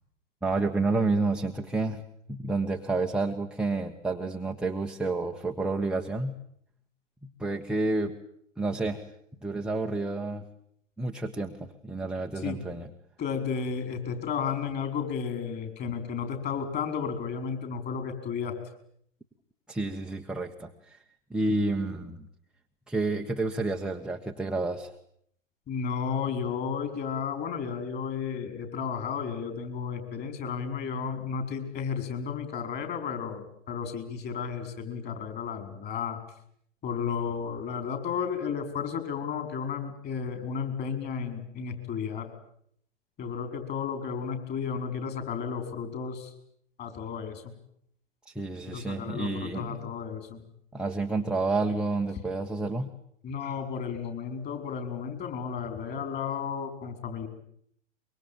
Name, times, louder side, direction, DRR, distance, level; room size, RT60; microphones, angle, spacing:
voice 1, 0.4-2.0 2.3-6.4 7.2-8.2 8.6-9.0 9.4-10.4 11.0-12.9 19.7-21.0 21.3-22.3 22.9-24.9 48.3-49.9 50.7-52.9, right 3 dB, ahead, 1 dB, 1.1 m, -30 dB
voice 2, 13.2-18.5 25.7-36.2 36.8-42.3 43.2-46.3 46.8-47.4 48.7-50.4 53.2-57.3, left 6 dB, 25° left, 8 dB, 5.0 m, -33 dB
24.5 x 23.0 x 9.0 m, 0.68 s
hypercardioid pair, 120°, 37 cm